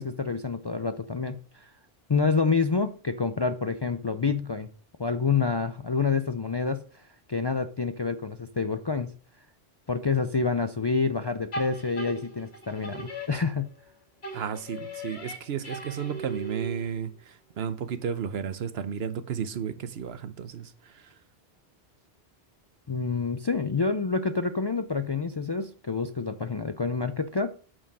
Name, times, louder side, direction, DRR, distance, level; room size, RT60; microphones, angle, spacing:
voice 1, 0.0-1.7 2.1-4.7 5.0-7.0 7.3-9.1 9.9-13.7 22.9-27.5, left 4 dB, 40° left, 0.3 m, -28 dB
sound 1, 11.5-13.9 14.2-17.1, right 1 dB, 85° left, 2.2 m, -39 dB
voice 2, 14.3-17.1 17.6-20.7, right 7 dB, 80° right, 1.0 m, -32 dB
8.7 x 4.7 x 6.1 m
omnidirectional pair, 1.0 m